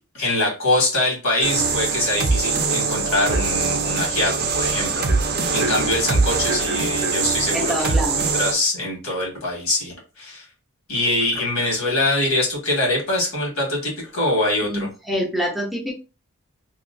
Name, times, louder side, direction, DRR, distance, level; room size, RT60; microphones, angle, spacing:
voice 1, 0.1-10.5 10.9-14.9, left 2 dB, 70° left, -2 dB, 1.8 m, -24 dB
sound 1, 1.4-8.5, right 4 dB, 45° right, 0.5 m, -22 dB
voice 2, 7.5-8.2 14.6-15.9, equal, ahead, -2 dB, 0.6 m, -26 dB
3.0 x 2.8 x 2.6 m, 0.31 s
head